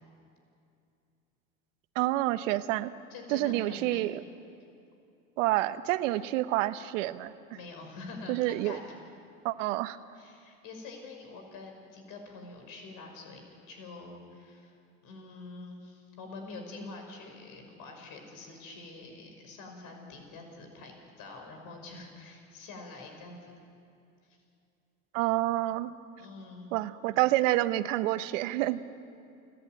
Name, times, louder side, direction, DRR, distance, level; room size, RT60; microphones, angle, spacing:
voice 1, 1.9-2.9 3.3-4.2 5.4-7.3 8.3-8.8 9.4-10.0 25.1-25.9 26.7-28.8, right 16 dB, 80° right, 13 dB, 1.0 m, -28 dB
voice 2, 3.1-4.1 7.5-8.9 10.1-14.7 15.0-23.5 24.3-24.4 26.2-26.7, left 3 dB, 60° left, 4 dB, 5.8 m, -46 dB
30.0 x 11.0 x 9.2 m, 2.6 s
hypercardioid pair, 90°, 38 cm